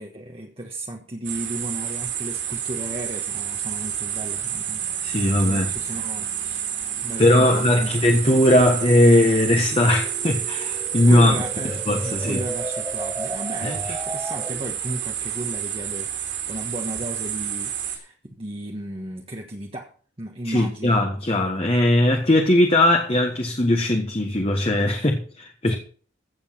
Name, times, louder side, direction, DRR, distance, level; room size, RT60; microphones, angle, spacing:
voice 1, 0.0-4.9 5.4-6.7 7.0-7.9 11.1-21.0 24.9-25.1 25.6-25.8, right 1 dB, 30° right, 1.4 m, -35 dB
sound 1, 1.2-18.0, right 9 dB, 70° right, 4.3 m, -30 dB
sound 2, 3.6-14.8, right 1 dB, 10° right, 1.6 m, -38 dB
voice 2, 5.0-5.7 7.2-11.4 11.9-12.4 13.6-14.0 20.4-25.8, left 1 dB, 30° left, 1.4 m, -19 dB
15.5 x 7.2 x 5.8 m
head